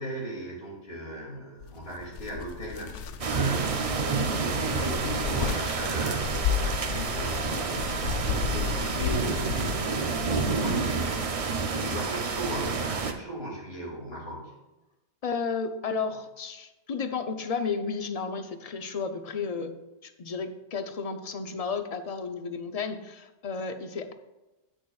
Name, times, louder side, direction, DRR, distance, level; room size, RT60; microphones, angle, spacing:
voice 1, 0.0-14.5, equal, 55° left, -2 dB, 2.8 m, -38 dB
sound 1, 1.6-10.9, left 8 dB, 90° left, 1.0 m, -34 dB
sound 2, 3.2-13.1, right 4 dB, 40° right, 0.6 m, -29 dB
voice 2, 15.2-24.1, left 5 dB, 40° left, 8 dB, 0.6 m, -33 dB
16.5 x 6.4 x 2.4 m, 1.0 s
omnidirectional pair, 1.2 m